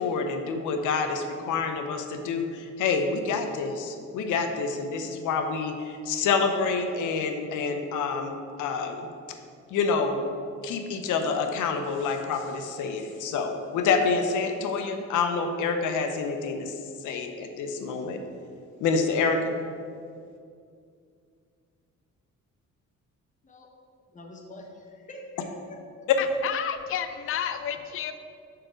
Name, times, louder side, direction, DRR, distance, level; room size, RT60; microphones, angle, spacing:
voice 1, 0.0-9.1 9.7-10.2 10.6-18.2 18.8-19.6, left 4 dB, 85° left, 6 dB, 0.8 m, -27 dB
voice 2, 24.1-26.1, left 2 dB, 25° left, 1 dB, 1.0 m, -45 dB
voice 3, 26.2-28.1, left 9 dB, 45° left, 9 dB, 0.5 m, -31 dB
5.0 x 4.7 x 6.2 m, 2.3 s
cardioid pair, 90°, 30 cm